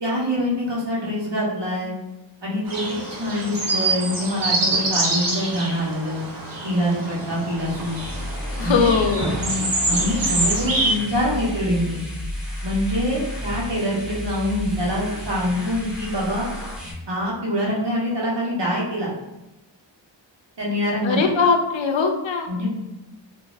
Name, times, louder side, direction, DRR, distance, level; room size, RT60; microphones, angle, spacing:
voice 1, 0.0-1.9 2.4-2.8 3.1-6.2 6.6-8.0 8.6-8.9 9.4-12.0 12.6-16.5 17.1-19.1 20.6-21.2 22.5-22.7, equal, 65° right, -5 dB, 1.2 m, -25 dB
sound 1, 2.7-10.9, right 2 dB, 45° right, 0.9 m, -25 dB
sound 2, 7.5-16.9, left 1 dB, ahead, 1.3 m, -32 dB
voice 2, 8.6-9.3 21.0-22.5, left 5 dB, 75° left, 5 dB, 0.6 m, -20 dB
3.8 x 2.6 x 2.5 m, 0.98 s
wide cardioid pair, 60°, 46 cm